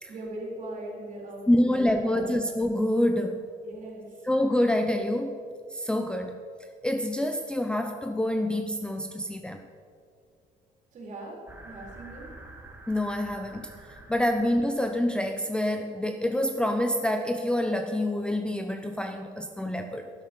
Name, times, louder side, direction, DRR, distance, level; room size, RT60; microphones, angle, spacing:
voice 1, 0.1-2.5 3.6-4.3 10.9-12.3, right 1 dB, 45° right, -2 dB, 4.2 m, -40 dB
voice 2, 1.5-3.4 4.2-5.3 5.7-6.4 6.8-9.6 12.9-13.7 14.1-20.1, left 1 dB, 5° left, 6 dB, 0.6 m, -27 dB
sound 1, 11.5-15.0, right 2 dB, 15° right, 1.8 m, -48 dB
13.0 x 11.5 x 5.4 m, 2.2 s
cardioid pair, 135°, 17 cm